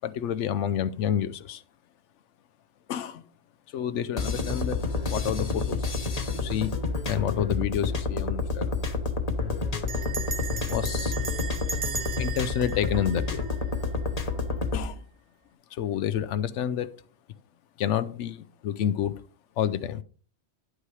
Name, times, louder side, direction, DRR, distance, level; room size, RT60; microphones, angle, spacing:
voice 1, 0.0-1.6 2.9-3.2 3.7-5.9 6.3-6.8 7.1-8.9 10.7-11.1 12.2-13.5 14.7-15.0 15.7-16.9 17.8-19.1 19.6-20.0, left 9 dB, 90° left, 14 dB, 0.9 m, -29 dB
sound 1, 4.2-14.8, left 3 dB, 35° left, 0.9 m, -29 dB
Bell, 7.7-8.1 8.4-8.5 8.7-9.1 9.9-14.0, right 5 dB, 35° right, 0.6 m, -37 dB
9.8 x 8.1 x 3.2 m, 0.40 s
omnidirectional pair, 1.2 m